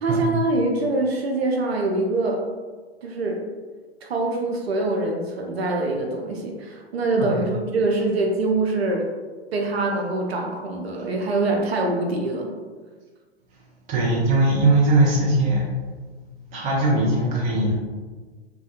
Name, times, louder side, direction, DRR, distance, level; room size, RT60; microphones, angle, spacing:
voice 1, 0.0-2.4 3.0-3.4 4.0-9.0 9.5-12.5, right 2 dB, 70° right, 1 dB, 0.5 m, -24 dB
voice 2, 13.9-15.7 16.5-17.8, right 2 dB, 25° right, -3 dB, 0.5 m, -20 dB
2.3 x 2.1 x 2.8 m, 1.4 s
figure-of-eight pair, 105°, 33 cm